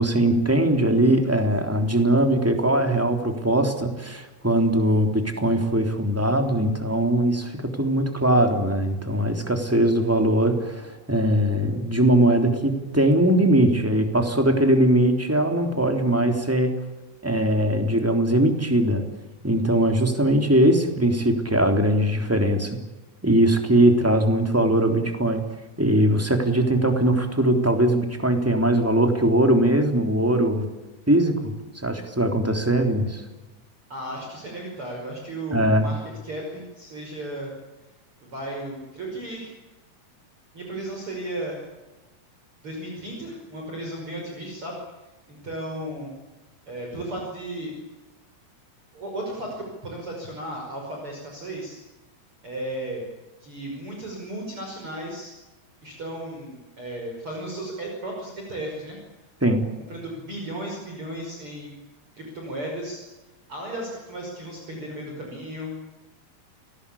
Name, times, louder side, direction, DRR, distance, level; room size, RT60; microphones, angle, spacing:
voice 1, 0.0-16.7 17.2-19.0 19.4-22.8 23.2-25.4 25.8-30.7 31.1-33.2 35.5-35.9 59.4-59.6, right 1 dB, 5° right, 5 dB, 3.0 m, -21 dB
voice 2, 33.9-37.5 38.2-39.5 40.5-41.6 42.6-44.7 45.3-46.2 46.7-47.7 48.9-51.8 52.4-53.1 53.4-55.3 55.8-59.0 59.9-61.7 62.1-63.0 63.5-65.7, right 1 dB, 35° right, 0 dB, 6.4 m, -34 dB
29.5 x 20.5 x 8.6 m, 1.1 s
omnidirectional pair, 4.4 m